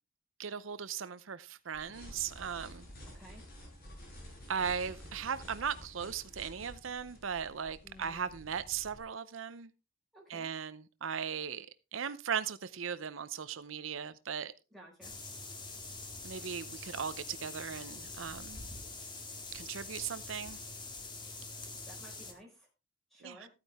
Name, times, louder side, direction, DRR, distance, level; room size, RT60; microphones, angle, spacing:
voice 1, 0.4-2.9 4.5-9.7 10.3-11.7 11.9-14.5 16.2-18.6 19.5-20.6 23.2-23.4, right 7 dB, 70° right, 0.6 m, -38 dB
sound 1, 1.7-9.0, equal, 50° left, 5.5 m, -51 dB
voice 2, 7.8-8.3 10.1-10.5 14.7-15.1 21.9-22.7 23.1-23.5, right 1 dB, ahead, 4.6 m, -54 dB
sound 2, 15.0-22.3, left 3 dB, 20° left, 2.0 m, -45 dB
14.0 x 9.5 x 3.5 m
head